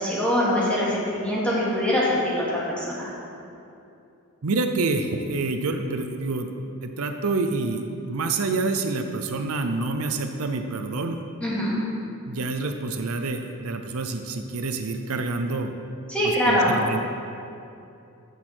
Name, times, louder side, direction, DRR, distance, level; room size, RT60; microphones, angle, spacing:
voice 1, 0.0-3.1 11.4-11.8 16.1-16.7, left 1 dB, 5° left, -8 dB, 2.5 m, -23 dB
voice 2, 4.4-11.2 12.3-15.7 16.2-17.0, right 3 dB, 75° right, 6 dB, 0.7 m, -27 dB
15.0 x 6.4 x 4.5 m, 2.6 s
head